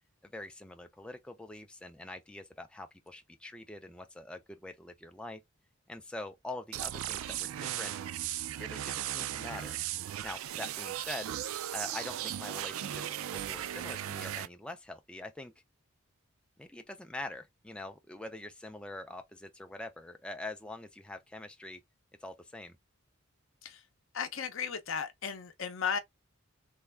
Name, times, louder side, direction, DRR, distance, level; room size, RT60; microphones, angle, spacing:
voice 1, 0.2-5.4 5.9-7.9 8.6-9.8 10.2-11.3 11.7-15.5 16.6-21.8 22.2-22.8, left 1 dB, 5° left, 0.3 m, -44 dB
sound 1, 6.7-14.5, right 12 dB, 70° right, 0.3 m, -37 dB
voice 2, 24.1-26.0, left 6 dB, 65° left, 0.6 m, -35 dB
3.4 x 2.2 x 3.3 m
head